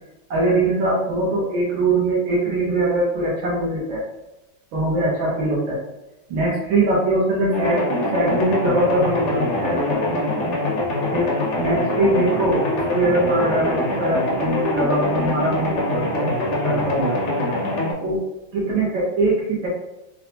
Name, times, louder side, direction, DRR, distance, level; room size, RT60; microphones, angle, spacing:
voice 1, 0.3-4.0 4.7-5.8 6.3-10.2 11.1-17.3 18.0-18.2 18.5-19.7, right 2 dB, 90° right, -6 dB, 1.6 m, -22 dB
sound 1, 7.5-17.9, left 1 dB, 75° left, 0.6 m, -24 dB
4.0 x 2.1 x 2.8 m, 0.93 s
omnidirectional pair, 2.1 m